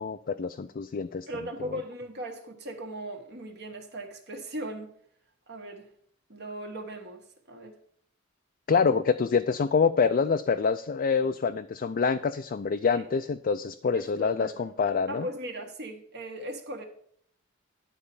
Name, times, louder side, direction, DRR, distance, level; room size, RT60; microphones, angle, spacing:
voice 1, 0.0-1.3 1.7-1.8 8.7-15.3, left 5 dB, 45° left, 0.4 m, -26 dB
voice 2, 1.3-4.9 5.5-5.9 6.3-7.8 12.9-13.1 13.9-14.7 15.1-16.8, right 1 dB, 55° right, 1.6 m, -38 dB
11.0 x 4.3 x 6.9 m
head